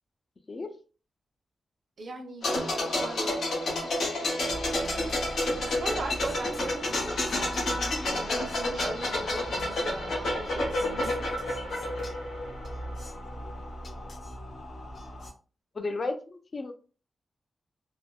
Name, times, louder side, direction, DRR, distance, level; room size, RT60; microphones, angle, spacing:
voice 1, 2.0-3.4 4.8-11.2, right 2 dB, 60° right, 2 dB, 0.7 m, -40 dB
sound 1, 2.4-13.0 13.3-13.5, left 1 dB, 85° left, 0.9 m, -30 dB
sound 2, 4.5-15.3, equal, 55° left, 0.8 m, -41 dB
voice 2, 15.7-16.7, left 3 dB, 40° left, 6 dB, 0.4 m, -33 dB
3.3 x 2.1 x 2.3 m, 0.37 s
wide cardioid pair, 120°, 0 cm